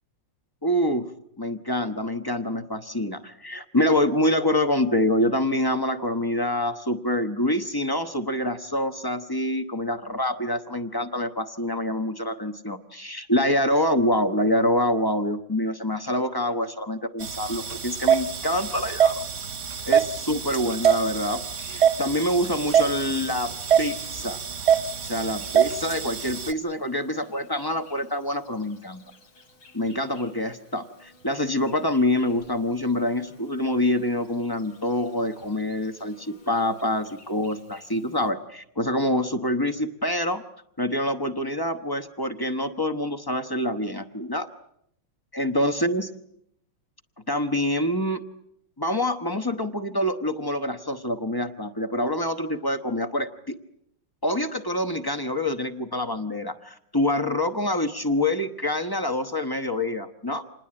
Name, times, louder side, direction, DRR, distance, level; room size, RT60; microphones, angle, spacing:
voice 1, 0.6-1.1 1.4-19.2 19.9-23.5 23.8-24.4 25.0-29.0 29.7-40.4 40.8-44.5 45.3-46.1 47.3-48.2 48.8-53.5 54.2-60.4, left 1 dB, 30° left, 9 dB, 0.4 m, -26 dB
sound 1, 17.2-26.5, right 8 dB, 40° right, 1.0 m, -25 dB
Insect, 22.5-38.3, left 2 dB, 75° left, 4.1 m, -54 dB
27.0 x 20.5 x 8.8 m, 0.75 s
omnidirectional pair, 2.3 m